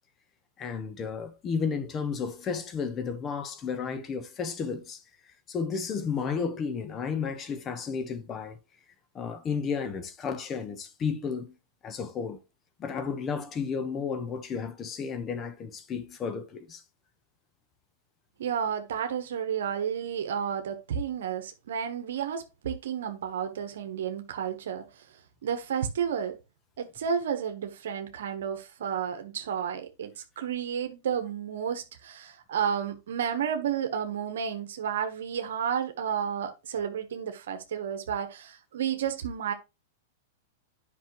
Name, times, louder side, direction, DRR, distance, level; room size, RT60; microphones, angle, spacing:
voice 1, 0.6-5.0 5.5-8.6 9.1-11.5 11.8-12.4 12.8-16.8, left 6 dB, 30° left, 1.3 m, -32 dB
voice 2, 18.4-26.4 26.8-39.5, right 8 dB, 75° right, 1.2 m, -32 dB
9.2 x 5.6 x 3.1 m
hypercardioid pair, 125°, 0 cm